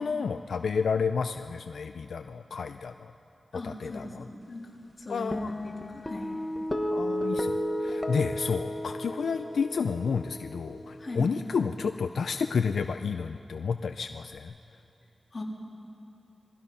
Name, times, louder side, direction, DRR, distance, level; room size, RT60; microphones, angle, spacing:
voice 1, 0.0-3.1 3.6-4.3 5.1-5.5 6.9-7.5 7.8-14.5, left 5 dB, 80° left, 7 dB, 0.5 m, -30 dB
voice 2, 3.5-4.1 4.5-4.7 5.0-6.3 11.0-11.3 15.3-15.4, left 2 dB, 35° left, -3 dB, 3.4 m, -39 dB
sound 1, 5.3-11.9, equal, 15° left, 1.2 m, -33 dB
27.0 x 20.5 x 5.6 m, 2.7 s
wide cardioid pair, 160°, 0 cm